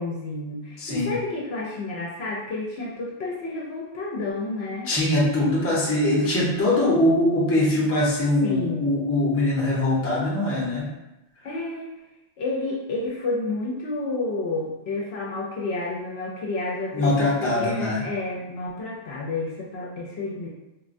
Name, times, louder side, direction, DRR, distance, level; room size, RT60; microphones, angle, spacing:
voice 1, 0.0-4.9 8.4-8.8 11.4-11.9 12.4-20.5, left 2 dB, 65° left, -4 dB, 0.8 m, -30 dB
voice 2, 0.8-1.1 4.9-10.9 16.9-18.0, left 1 dB, 15° left, -6 dB, 0.6 m, -22 dB
3.5 x 2.1 x 2.5 m, 0.96 s
omnidirectional pair, 1.2 m